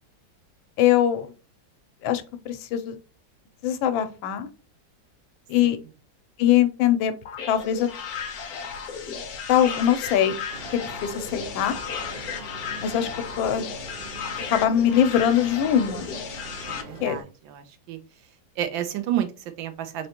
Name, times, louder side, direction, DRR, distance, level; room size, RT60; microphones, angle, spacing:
voice 1, 0.8-1.3 2.0-3.0 3.6-4.5 5.5-5.8 6.4-7.1 7.5-7.9 9.5-10.3 10.7-11.8 12.8-13.1 13.4-13.7 14.5-16.1 16.7-17.2, left 10 dB, 90° left, 9 dB, 1.4 m, -22 dB
sound 1, 7.3-16.8, left 6 dB, 60° left, 1.1 m, -35 dB
sound 2, 10.5-17.2, right 2 dB, 55° right, 0.5 m, -42 dB
voice 2, 16.7-18.0 18.6-20.1, right 10 dB, 85° right, 8 dB, 1.4 m, -31 dB
3.9 x 3.2 x 2.8 m, 0.33 s
omnidirectional pair, 2.1 m